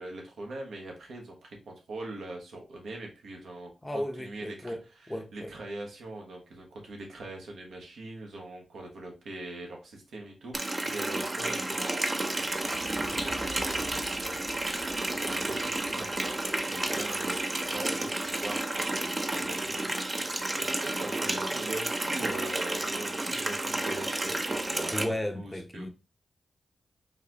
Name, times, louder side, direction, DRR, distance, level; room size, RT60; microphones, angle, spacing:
voice 1, 0.0-4.8 5.3-16.1 16.4-17.4 17.7-25.9, right 2 dB, 80° right, 1.0 m, -42 dB
voice 2, 3.8-5.5 16.8-17.1 24.9-25.9, left 1 dB, 15° left, 0.7 m, -35 dB
Water tap faucet, 10.5-25.0, right 2 dB, 35° right, 0.6 m, -31 dB
Fire, 12.5-19.0 19.6-19.7, equal, 60° right, 1.8 m, -50 dB
4.0 x 2.6 x 2.9 m
supercardioid pair, 45°, 0 cm